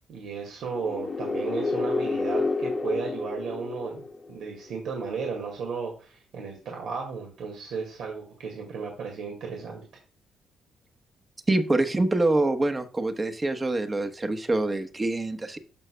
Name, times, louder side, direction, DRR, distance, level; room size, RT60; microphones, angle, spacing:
voice 1, 0.1-4.0 4.3-9.8, right 5 dB, 75° right, 1 dB, 2.0 m, -34 dB
sound 1, 0.7-4.5, left 3 dB, 20° left, 1.1 m, -29 dB
voice 2, 11.5-15.6, right 2 dB, 25° right, 7 dB, 1.1 m, -25 dB
13.5 x 4.9 x 2.2 m, 0.38 s
cardioid pair, 90°, 0 cm